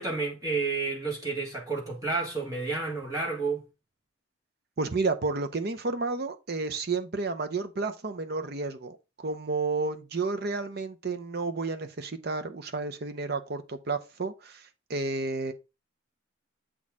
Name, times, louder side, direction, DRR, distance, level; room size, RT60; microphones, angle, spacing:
voice 1, 0.0-3.6, right 3 dB, 15° right, 1.6 m, -30 dB
voice 2, 4.8-15.5, right 3 dB, 50° right, 0.7 m, -31 dB
7.4 x 4.2 x 3.5 m
head